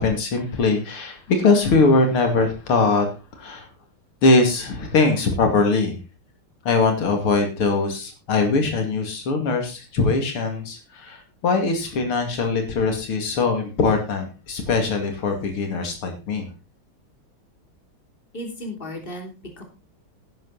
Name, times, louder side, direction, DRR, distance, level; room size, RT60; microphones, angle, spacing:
voice 1, 0.0-3.1 3.4-3.7 4.2-6.0 6.6-16.5, left 3 dB, 90° left, 4 dB, 3.4 m, -21 dB
voice 2, 18.3-19.6, left 1 dB, 25° left, 3 dB, 3.4 m, -35 dB
11.0 x 11.0 x 4.1 m, 0.31 s
omnidirectional pair, 2.3 m